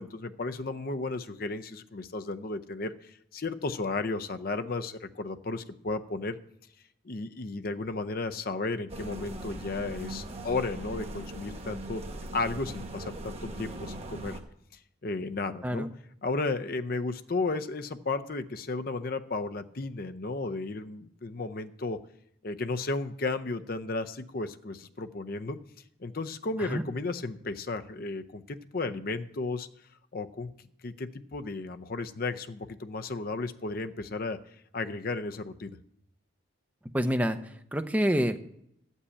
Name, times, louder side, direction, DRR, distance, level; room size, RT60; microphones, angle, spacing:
voice 1, 0.0-6.4 7.0-12.0 12.3-14.4 15.0-15.9 16.2-22.0 22.4-25.6 26.0-29.7 30.1-30.5 30.8-34.4 34.7-35.8, left 3 dB, 45° left, 8 dB, 0.6 m, -34 dB
sound 1, 8.9-14.4, right 1 dB, 30° right, 1.2 m, -39 dB
voice 2, 36.9-38.4, equal, 10° right, 7 dB, 0.7 m, -27 dB
11.0 x 5.4 x 8.4 m, 0.73 s
head